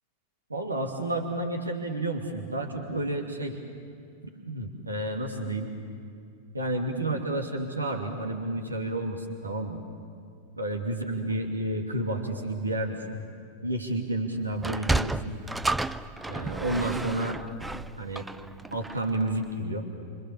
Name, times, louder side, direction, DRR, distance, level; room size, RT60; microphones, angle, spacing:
voice 1, 0.5-3.6 4.3-5.7 6.5-9.8 10.6-13.2 13.6-15.4 16.3-17.4 18.0-18.3 18.7-19.9, right 1 dB, 80° right, 3 dB, 2.7 m, -30 dB
Sliding door, 14.5-19.2, right 2 dB, 5° right, 0.6 m, -31 dB
28.0 x 25.5 x 7.2 m, 2.3 s
figure-of-eight pair, 90°, 0 cm